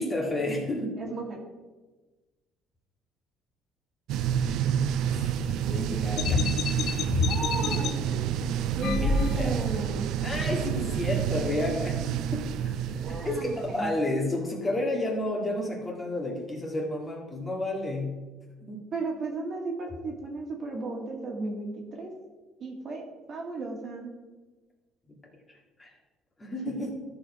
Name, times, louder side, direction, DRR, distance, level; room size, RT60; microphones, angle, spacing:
voice 1, 0.0-1.0 5.1-6.6 9.0-9.6 10.2-18.3 18.7-18.9 25.1-25.2 25.8-25.9 26.4-26.9, left 1 dB, 20° left, -1 dB, 1.9 m, -31 dB
voice 2, 1.0-1.4 7.1-8.2 8.7-10.1 12.9-13.9 18.9-22.1 22.6-24.1 26.6-26.9, right 3 dB, 45° right, 1 dB, 1.8 m, -35 dB
sound 1, 4.1-13.9, right 9 dB, 70° right, 0.4 m, -29 dB
sound 2, 6.2-7.9 8.8-9.7, left 5 dB, 55° left, 0.6 m, -28 dB
12.5 x 4.8 x 4.8 m, 1.2 s
cardioid pair, 125°, 0 cm